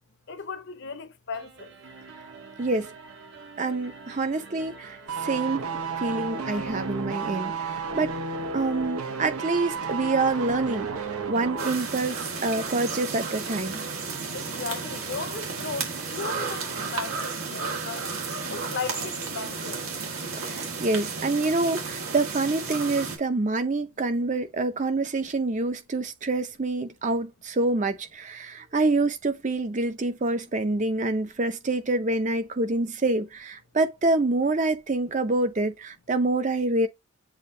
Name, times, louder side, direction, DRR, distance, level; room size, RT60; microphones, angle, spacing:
voice 1, 0.3-1.7 14.3-18.1 18.5-19.8, left 5 dB, 50° left, 0.6 m, -36 dB
sound 1, 1.3-17.3, right 3 dB, 55° right, 0.9 m, -47 dB
voice 2, 2.6-2.9 3.6-8.2 8.5-13.8 20.4-36.9, right 2 dB, 35° right, 0.6 m, -27 dB
sound 2, 5.1-11.8 12.0-12.2, right 4 dB, 90° right, 0.8 m, -32 dB
sound 3, 11.6-23.2, right 4 dB, 75° right, 1.6 m, -33 dB
7.1 x 2.6 x 2.6 m
head